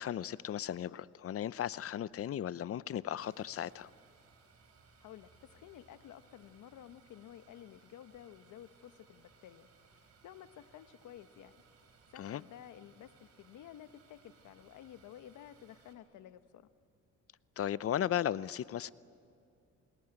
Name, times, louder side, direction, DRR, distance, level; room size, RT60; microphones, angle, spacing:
voice 1, 0.0-3.9 12.2-12.4 17.6-18.9, left 10 dB, 50° left, 19 dB, 0.6 m, -36 dB
sound 1, 3.2-15.9, right 5 dB, 60° right, 4.4 m, -64 dB
voice 2, 5.0-11.6 12.1-16.7, left 11 dB, 80° left, 12 dB, 1.0 m, -53 dB
28.0 x 20.5 x 8.9 m, 2.5 s
cardioid pair, 90°, 30 cm